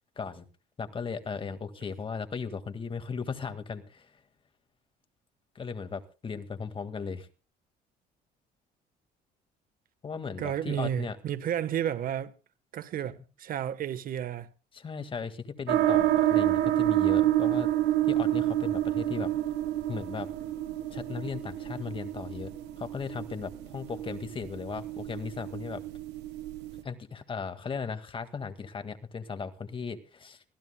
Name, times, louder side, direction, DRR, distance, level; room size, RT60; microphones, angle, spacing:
voice 1, 0.8-4.1 5.6-7.3 10.0-11.2 14.7-17.7 18.1-19.3 19.9-20.3 20.9-22.5 22.8-25.8 26.8-30.4, left 5 dB, 30° left, 1.9 m, -37 dB
voice 2, 10.4-12.3 12.7-14.5, right 10 dB, 55° right, 1.2 m, -32 dB
sound 1, 15.7-26.8, right 13 dB, 90° right, 1.2 m, -28 dB
24.5 x 15.5 x 2.2 m
cardioid pair, 110°, 17 cm